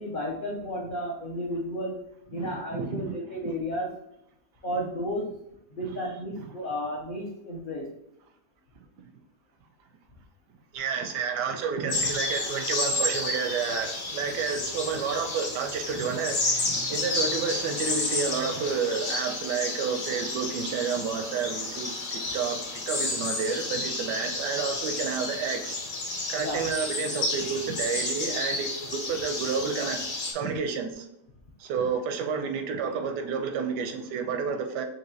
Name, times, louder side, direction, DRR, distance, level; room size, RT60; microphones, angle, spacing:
voice 1, 0.0-1.9 2.3-3.9 4.6-5.3 5.7-7.9 26.4-26.7, equal, 55° left, -4 dB, 0.5 m, -32 dB
voice 2, 2.4-3.0 10.7-25.8 26.3-30.0 30.3-31.0 31.6-34.8, right 6 dB, 85° right, 6 dB, 1.2 m, -30 dB
sound 1, 11.9-30.3, left 2 dB, 75° left, 1.6 m, -31 dB
6.0 x 2.8 x 2.7 m, 0.81 s
omnidirectional pair, 1.8 m